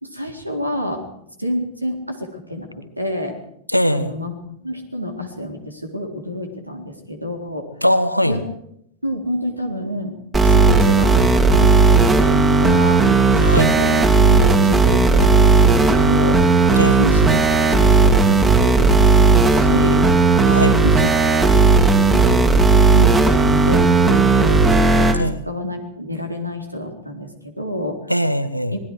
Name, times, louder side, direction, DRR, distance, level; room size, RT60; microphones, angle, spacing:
voice 1, 0.0-1.1 1.4-2.7 3.0-3.4 3.9-4.3 4.6-7.7 8.2-8.4 9.0-10.2 10.4-13.0 13.5-15.5 15.8-19.1 19.5-20.0 20.8-21.1 21.4-21.5 22.1-22.6 22.9-25.2 25.5-28.0 28.7-28.8, equal, 85° right, 4 dB, 4.1 m, -28 dB
voice 2, 3.7-4.1 7.8-8.4 13.4-13.7 16.7-17.0 20.4-20.8 25.2-25.4 28.1-28.7, equal, 90° left, 11 dB, 1.4 m, -20 dB
sound 1, 10.3-25.2, right 4 dB, 15° right, 2.9 m, -14 dB
26.5 x 20.5 x 4.9 m, 0.74 s
figure-of-eight pair, 90°, 0 cm